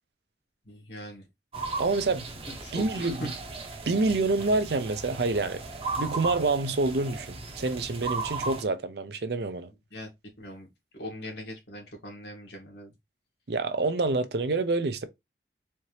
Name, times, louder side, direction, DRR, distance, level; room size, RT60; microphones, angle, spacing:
voice 1, 0.7-1.3 2.5-3.3 9.9-10.1 10.4-10.7 10.9-12.9, equal, 70° left, 1.8 m, -40 dB
sound 1, 1.5-8.6, right 3 dB, 30° right, 0.8 m, -36 dB
voice 2, 1.8-2.3 2.7-3.3 3.9-5.6 6.0-9.7 13.5-15.0, right 3 dB, 65° right, 0.6 m, -27 dB
4.4 x 2.8 x 3.2 m
head